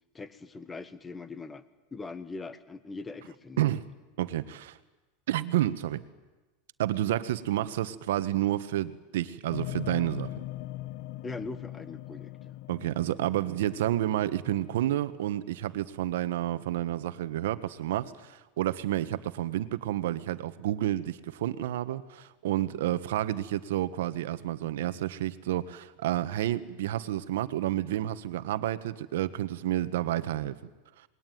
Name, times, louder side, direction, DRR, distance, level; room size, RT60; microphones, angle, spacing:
voice 1, 0.1-1.6 1.9-3.6 11.2-12.5, left 3 dB, 15° left, 13 dB, 1.4 m, -41 dB
voice 2, 3.6-3.9 4.2-4.8 5.3-6.0 6.8-10.3 12.7-30.5, right 13 dB, 80° right, 13 dB, 1.5 m, -30 dB
sound 1, 9.5-15.0, left 16 dB, 60° left, 0.8 m, -41 dB
28.0 x 21.0 x 9.5 m, 1.2 s
supercardioid pair, 150°, 0 cm